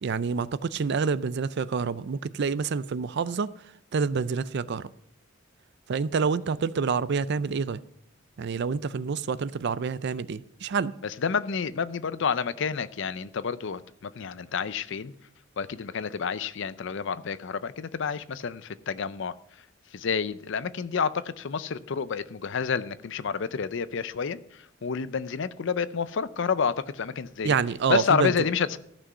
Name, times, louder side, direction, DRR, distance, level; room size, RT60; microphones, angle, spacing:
voice 1, 0.0-3.5 3.9-4.9 5.9-7.8 8.4-10.9 27.4-28.3, right 5 dB, 55° right, 17 dB, 0.4 m, -27 dB
voice 2, 11.0-15.1 15.6-19.3 19.9-27.5 27.9-28.8, left 6 dB, 65° left, 15 dB, 0.5 m, -29 dB
14.0 x 6.2 x 5.5 m, 0.71 s
head